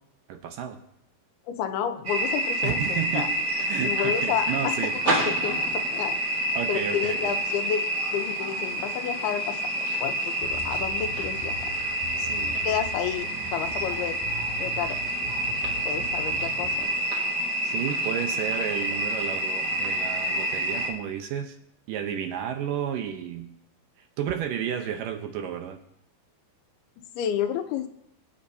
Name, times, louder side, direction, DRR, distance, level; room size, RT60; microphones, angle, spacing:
voice 1, 0.3-0.8 2.6-3.4 3.7-5.0 6.5-7.3 12.2-12.6 17.6-21.6 21.9-23.5 24.0-25.8, right 9 dB, 75° right, 5 dB, 2.3 m, -32 dB
voice 2, 1.5-3.3 3.8-4.8 5.3-6.2 6.7-7.8 8.1-11.7 12.5-14.2 14.6-15.0 15.9-16.9 27.2-27.9, left 9 dB, 85° left, 7 dB, 2.8 m, -30 dB
sound 1, 2.0-20.9, right 1 dB, 45° right, 1.4 m, -28 dB
sound 2, 10.4-16.8, equal, 65° left, 7.2 m, -41 dB
23.5 x 8.7 x 2.7 m, 0.76 s
omnidirectional pair, 4.4 m